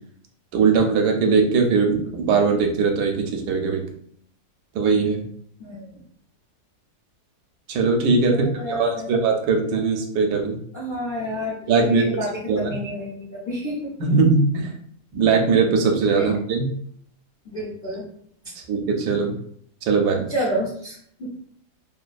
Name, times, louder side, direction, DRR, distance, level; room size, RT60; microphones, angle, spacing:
voice 1, 0.5-3.9 4.7-5.2 7.7-10.6 11.7-12.1 12.5-12.7 14.0-14.7 15.1-16.7 18.6-19.3 19.8-20.3, right 4 dB, 80° right, 3 dB, 1.1 m, -20 dB
voice 2, 5.6-6.0 8.3-9.1 10.7-12.3 12.6-13.9 16.2-16.3 17.4-18.0 18.4-18.5 20.3-21.3, equal, 60° left, -7 dB, 0.5 m, -29 dB
3.0 x 2.2 x 2.4 m, 0.63 s
omnidirectional pair, 1.7 m